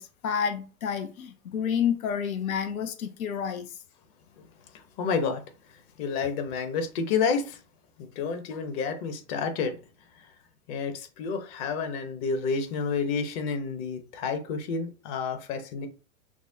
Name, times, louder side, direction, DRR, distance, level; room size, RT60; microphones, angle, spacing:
voice 1, 0.0-3.7, left 7 dB, 80° left, 0.8 m, -29 dB
voice 2, 4.7-7.6 8.0-9.8 10.1-10.3 10.7-15.9, left 5 dB, 45° left, 1.0 m, -30 dB
5.9 x 2.1 x 2.8 m
hypercardioid pair, 115°, 41 cm